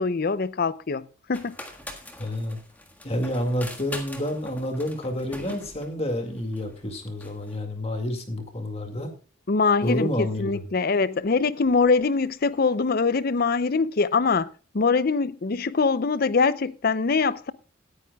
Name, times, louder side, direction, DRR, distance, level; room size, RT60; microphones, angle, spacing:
voice 1, 0.0-1.6 9.5-14.5 14.7-17.5, left 4 dB, 50° left, 0.5 m, -23 dB
sound 1, 1.3-7.6, left 1 dB, 10° left, 1.6 m, -42 dB
voice 2, 2.2-2.6 3.0-9.1 9.8-10.6, left 1 dB, 30° left, 2.1 m, -29 dB
18.0 x 9.6 x 2.3 m
head